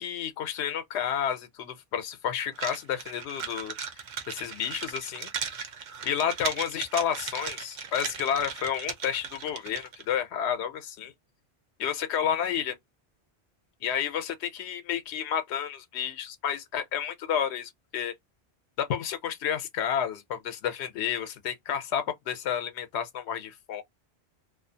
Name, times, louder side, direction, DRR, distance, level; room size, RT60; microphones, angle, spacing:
voice 1, 0.0-3.7 4.3-5.3 6.0-11.1 11.8-12.8 13.8-18.1 18.8-23.8, left 8 dB, 80° left, 0.8 m, -31 dB
sound 1, 2.5-10.0, right 6 dB, 55° right, 0.6 m, -37 dB
2.4 x 2.3 x 2.6 m
omnidirectional pair, 1.1 m